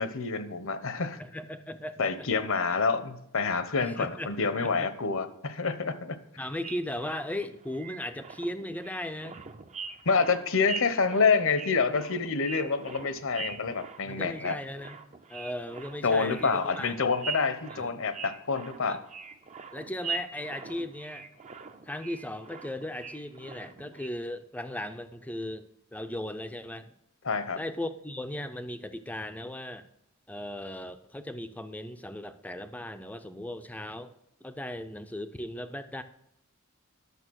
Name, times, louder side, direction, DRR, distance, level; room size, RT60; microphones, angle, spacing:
voice 1, 0.0-1.2 2.0-6.2 10.1-14.6 16.0-19.0 27.2-27.6, left 4 dB, 65° left, 12 dB, 0.9 m, -27 dB
voice 2, 1.2-2.3 3.8-4.9 6.4-9.4 14.0-15.0 15.3-17.1 17.7-17.9 18.8-19.0 19.7-21.3 21.8-26.9 27.6-29.8 30.3-34.1 34.4-36.0, left 1 dB, 5° left, 10 dB, 0.5 m, -37 dB
sound 1, 6.6-24.1, right 5 dB, 30° right, 0.7 m, -42 dB
11.0 x 6.8 x 6.4 m, 0.82 s
head